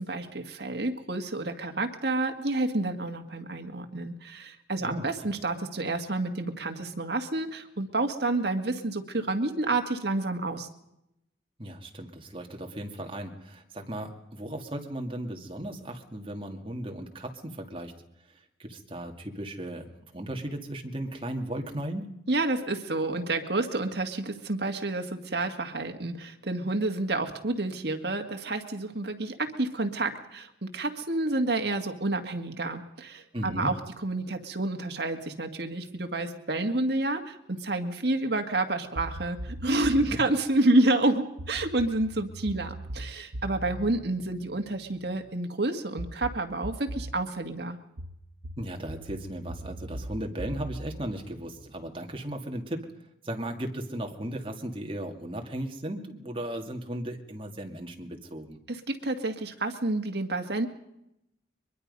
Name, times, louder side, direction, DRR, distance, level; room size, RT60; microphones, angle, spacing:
voice 1, 0.0-10.7 22.3-47.8 58.7-60.7, right 2 dB, 60° right, 5 dB, 1.9 m, -29 dB
voice 2, 11.6-17.9 18.3-22.1 33.3-33.7 40.0-40.2 48.6-52.9 53.2-58.6, right 1 dB, 25° right, 3 dB, 2.1 m, -36 dB
sound 1, 39.0-40.2 41.4-45.1 46.0-47.2 48.0-51.9, right 1 dB, 85° right, 1.0 m, -40 dB
23.0 x 22.0 x 5.4 m, 0.84 s
head